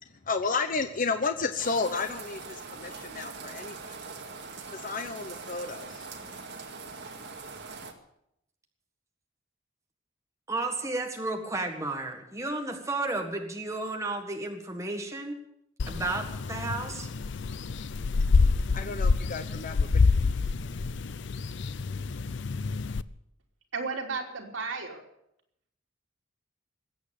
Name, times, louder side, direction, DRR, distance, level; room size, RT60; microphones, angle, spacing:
voice 1, 0.3-4.0 4.7-6.1 18.2-19.9, left 4 dB, 45° left, 8 dB, 0.9 m, -32 dB
sound 1, 1.6-7.9, right 4 dB, 60° right, 2.1 m, -42 dB
voice 2, 10.5-15.4 15.9-17.1, right 2 dB, 15° right, 3 dB, 1.7 m, -33 dB
sound 2, 15.8-23.0, left 4 dB, 65° left, 0.5 m, -27 dB
voice 3, 23.7-25.0, right 4 dB, 80° right, -1 dB, 3.4 m, -33 dB
20.5 x 8.4 x 8.3 m, 0.77 s
head